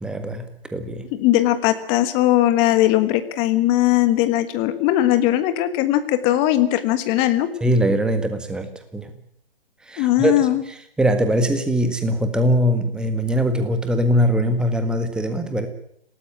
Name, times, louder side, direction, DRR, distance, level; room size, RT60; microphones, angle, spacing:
voice 1, 0.0-1.1 7.6-9.1 9.8-15.7, equal, 5° right, 8 dB, 1.6 m, -22 dB
voice 2, 1.1-7.5 10.0-10.6, left 14 dB, 15° left, 10 dB, 1.4 m, -19 dB
27.0 x 18.5 x 8.8 m, 0.70 s
figure-of-eight pair, 140°, 31 cm